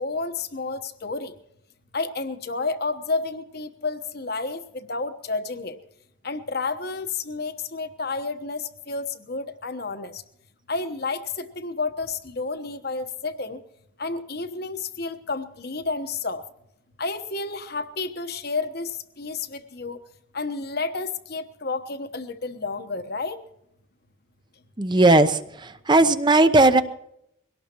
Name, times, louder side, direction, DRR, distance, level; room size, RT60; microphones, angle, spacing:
voice 1, 0.0-1.3 1.9-5.8 6.2-10.2 10.7-13.6 14.0-16.4 17.0-20.0 20.3-23.4, left 3 dB, 50° left, 9 dB, 1.1 m, -30 dB
voice 2, 24.8-26.8, right 2 dB, 20° right, 10 dB, 0.7 m, -17 dB
22.5 x 18.0 x 3.0 m, 0.79 s
head